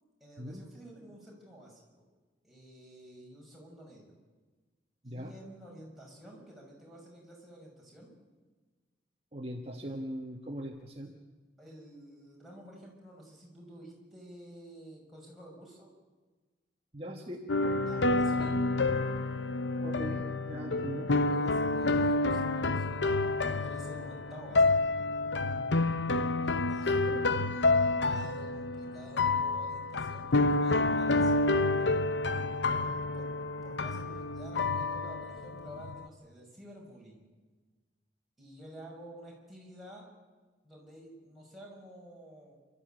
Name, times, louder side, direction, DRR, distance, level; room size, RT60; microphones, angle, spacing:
voice 1, 0.2-1.8 2.4-4.1 5.0-8.1 11.6-15.9 17.8-18.7 21.2-24.7 26.4-27.4 27.7-31.9 32.7-33.3 33.6-37.2 38.4-40.1 40.6-42.6, right 1 dB, ahead, -4 dB, 6.4 m, -50 dB
voice 2, 9.3-11.1 16.9-17.4 19.8-21.1 25.3-25.8 26.8-27.6, equal, 30° right, 1 dB, 1.5 m, -41 dB
sound 1, 17.5-36.1, left 2 dB, 70° left, 0.8 m, -29 dB
28.0 x 13.0 x 9.1 m, 1.3 s
head